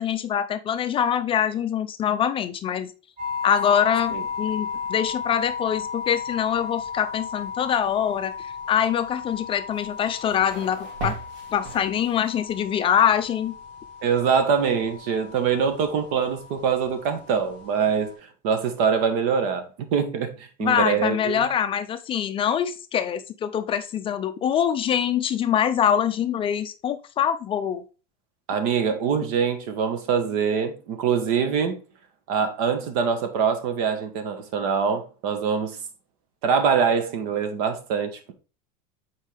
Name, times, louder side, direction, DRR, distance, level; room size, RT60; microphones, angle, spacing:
voice 1, 0.0-2.9 3.4-11.2 11.5-13.5 20.6-27.8, left 9 dB, 25° left, 0.5 m, -24 dB
sound 1, 3.2-18.1, left 6 dB, 35° right, 3.8 m, -35 dB
sound 2, 9.7-12.4, right 3 dB, 85° right, 2.5 m, -37 dB
voice 2, 14.0-18.1 18.4-21.5 28.5-31.8 32.3-35.8 36.4-38.3, right 6 dB, 65° right, 1.4 m, -24 dB
7.2 x 4.5 x 3.4 m
supercardioid pair, 145°, 21 cm